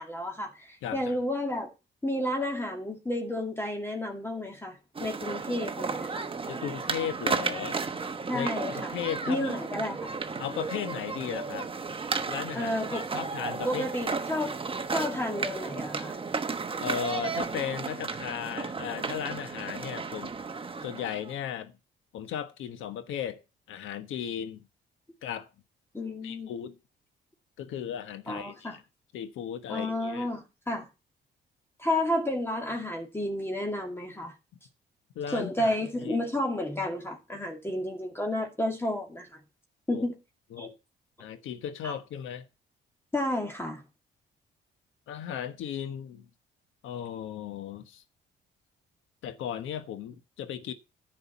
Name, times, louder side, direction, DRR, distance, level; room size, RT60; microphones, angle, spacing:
voice 1, 0.0-1.7 2.0-6.3 8.3-8.9 9.3-10.1 12.5-13.1 13.6-14.5 14.9-16.2 25.9-26.5 28.3-28.7 29.7-30.9 31.8-34.3 35.3-39.4 39.9-40.1 40.6-40.7 41.8-41.9 43.1-43.8, left 1 dB, 10° left, 2.2 m, -31 dB
voice 2, 0.8-1.2 6.5-7.8 8.3-9.6 10.4-11.7 12.3-13.9 16.8-20.3 20.8-21.7 22.1-23.4 23.7-24.6 25.2-25.5 26.2-26.8 27.6-28.8 29.1-30.3 35.1-35.8 36.0-36.2 39.9-40.0 40.5-40.7 41.2-42.5 45.1-46.2 46.8-48.0 49.2-50.7, left 9 dB, 85° left, 1.3 m, -36 dB
sound 1, 4.9-21.4, right 4 dB, 25° right, 1.1 m, -34 dB
10.0 x 5.1 x 7.2 m
cardioid pair, 90°, 20 cm